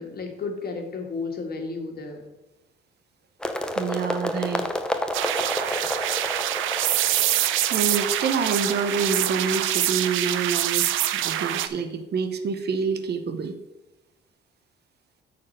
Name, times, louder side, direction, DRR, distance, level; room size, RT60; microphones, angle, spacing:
voice 1, 0.0-2.3, left 4 dB, 50° left, 3 dB, 1.8 m, -33 dB
sound 1, 3.4-9.3, left 1 dB, 5° left, 0.8 m, -31 dB
voice 2, 3.7-4.7 5.8-5.9 7.7-13.5, right 5 dB, 55° right, 9 dB, 0.9 m, -27 dB
sound 2, 5.1-11.7, right 12 dB, 85° right, 0.5 m, -25 dB
8.6 x 4.3 x 6.4 m, 1.0 s
cardioid pair, 90°, 20 cm